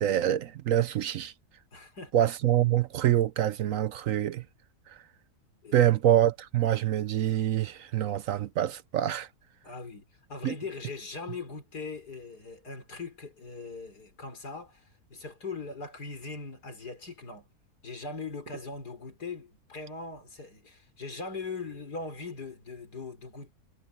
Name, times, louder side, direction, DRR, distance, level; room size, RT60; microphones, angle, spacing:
voice 1, 0.0-1.3 2.1-4.4 4.9-5.0 5.7-9.3 10.4-10.5, right 11 dB, 65° right, 0.9 m, -26 dB
voice 2, 1.7-2.3 5.6-5.8 9.6-10.0 10.3-14.8 15.1-17.5 17.8-23.5, left 4 dB, 90° left, 5.0 m, -40 dB
omnidirectional pair, 1.7 m